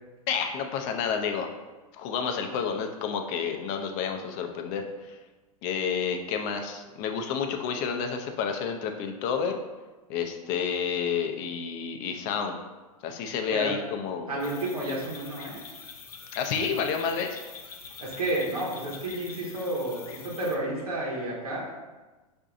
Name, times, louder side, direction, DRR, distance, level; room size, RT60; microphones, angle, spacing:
voice 1, 0.3-1.5 1.9-5.2 5.6-9.6 10.1-12.6 13.0-14.3 16.3-17.4, left 6 dB, 40° left, 5 dB, 0.5 m, -30 dB
voice 2, 14.3-15.6 18.0-21.6, right 1 dB, 90° right, -5 dB, 1.0 m, -31 dB
sound 1, 14.4-20.6, left 5 dB, 90° left, 0.5 m, -45 dB
4.5 x 2.6 x 2.5 m, 1.2 s
hypercardioid pair, 110°, 19 cm